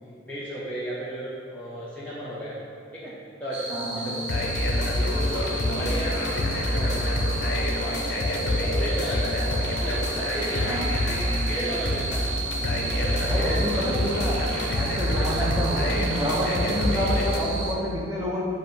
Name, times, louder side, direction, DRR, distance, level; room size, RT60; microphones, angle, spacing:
voice 1, 0.0-2.6 2.9-3.7 4.0-4.5 4.9-7.1 7.4-12.3 12.9-13.7 15.3-15.4 16.7-16.9, right 1 dB, 5° left, -10 dB, 0.7 m, -35 dB
sound 1, 3.5-17.8, right 3 dB, 65° right, 0.6 m, -34 dB
voice 2, 3.7-4.1 5.6-5.9 10.6-10.8 11.1-11.4 13.3-14.4 14.7-18.4, equal, 15° right, -6 dB, 1.1 m, -29 dB
sound 2, 4.3-17.4, left 1 dB, 55° left, 0.6 m, -26 dB
7.4 x 2.6 x 5.4 m, 2.3 s
head